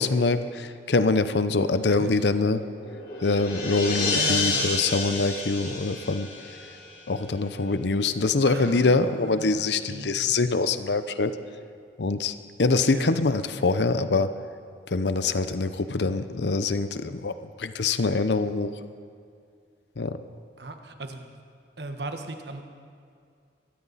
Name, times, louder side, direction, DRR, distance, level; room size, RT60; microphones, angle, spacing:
voice 1, 0.0-2.6 3.2-6.3 7.1-11.3 12.0-12.3 12.6-14.3 14.9-17.3 17.6-18.7 20.0-20.2, left 3 dB, 75° left, 11 dB, 0.7 m, -24 dB
voice 2, 1.9-2.3 4.1-4.7 8.5-10.3 12.9-13.1 20.6-21.4 21.8-22.6, right 2 dB, 70° right, 5 dB, 1.4 m, -37 dB
sound 1, 2.6-7.1, left 3 dB, 55° left, 5.4 m, -30 dB
22.0 x 15.5 x 4.1 m, 2.3 s
head